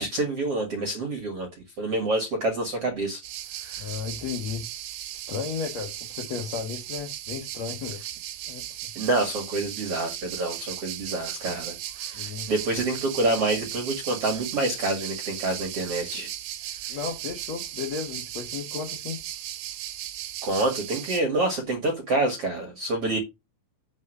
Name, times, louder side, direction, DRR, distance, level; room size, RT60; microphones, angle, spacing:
voice 1, 0.0-1.5 1.8-3.2 3.6-3.9 8.9-16.3 20.4-23.2, right 2 dB, 50° right, 1.7 m, -27 dB
sound 1, 3.2-21.2, right 12 dB, 70° right, 2.6 m, -36 dB
voice 2, 3.8-4.6 5.1-8.0 8.5-8.9 12.1-12.5 16.9-19.2, left 6 dB, 85° left, 1.5 m, -34 dB
8.1 x 4.0 x 6.7 m
omnidirectional pair, 5.9 m